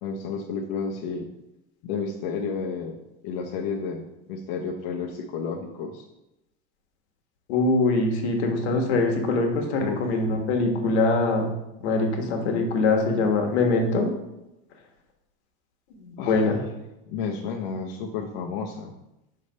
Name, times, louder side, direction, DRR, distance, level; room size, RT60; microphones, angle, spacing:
voice 1, 0.0-1.3 1.8-3.0 3.2-4.0 4.3-6.1 9.8-10.0 16.2-16.6 17.1-18.9, left 5 dB, 60° left, 0 dB, 0.8 m, -31 dB
voice 2, 7.5-11.5 11.8-14.1 15.9-16.6, left 3 dB, 85° left, 2 dB, 1.4 m, -23 dB
5.6 x 3.3 x 5.3 m, 0.92 s
supercardioid pair, 150°, 33 cm